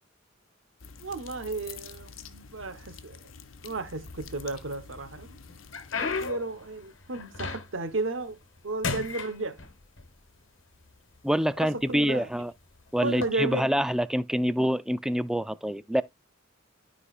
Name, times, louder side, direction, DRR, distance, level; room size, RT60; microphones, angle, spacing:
sound 1, 0.8-6.3, left 5 dB, 90° left, 0.8 m, -47 dB
voice 1, 1.0-3.3 3.6-5.4 6.2-8.4 8.6-9.6 11.6-12.3 13.0-13.7, right 2 dB, 75° right, 1.1 m, -33 dB
sound 2, 4.0-4.7 5.2-7.9 8.3-8.6 8.8-10.1 10.9-11.0 11.7-11.9 13.1-13.3, left 4 dB, 70° left, 1.2 m, -34 dB
voice 2, 11.2-12.5 12.9-16.0, equal, 5° right, 0.3 m, -26 dB
12.5 x 4.8 x 2.4 m
head